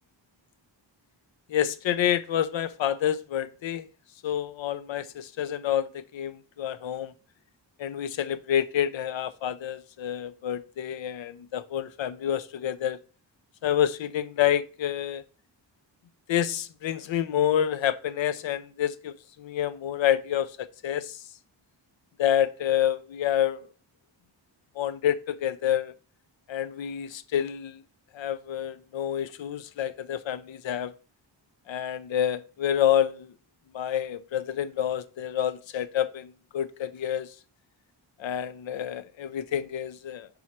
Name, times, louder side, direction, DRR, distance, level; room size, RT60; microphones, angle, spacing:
voice 1, 1.5-3.9 4.2-7.1 7.8-13.0 13.6-15.2 16.3-21.2 22.2-23.6 24.8-25.9 26.5-27.8 28.1-30.9 31.7-33.3 33.7-37.3 38.2-40.3, left 10 dB, 85° left, 0.6 m, -28 dB
5.8 x 3.9 x 4.2 m
wide cardioid pair, 115°, 44 cm